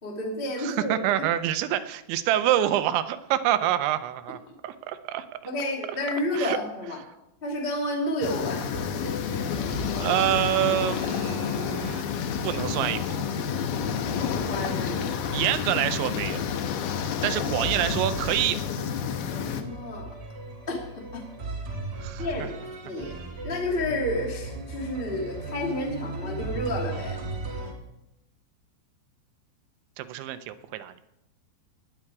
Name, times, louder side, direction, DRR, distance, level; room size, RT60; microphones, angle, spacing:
voice 1, 0.0-1.0 5.4-7.0 7.4-9.0 14.1-15.2 17.1-17.6 19.2-20.1 20.7-20.8 21.1-21.2 22.2-22.5 22.8-23.1 23.4-27.2, left 1 dB, 25° left, -1 dB, 1.3 m, -31 dB
voice 2, 0.6-5.3 6.3-6.6 10.0-12.1 12.4-13.2 15.3-16.4 17.2-18.7 22.0-22.3 30.0-30.9, right 12 dB, 80° right, 11 dB, 3.0 m, -26 dB
sound 1, 8.2-19.6, left 8 dB, 80° left, 2.1 m, -30 dB
sound 2, 8.7-27.7, right 2 dB, 40° right, 1.5 m, -37 dB
18.0 x 10.0 x 4.8 m, 0.88 s
omnidirectional pair, 5.3 m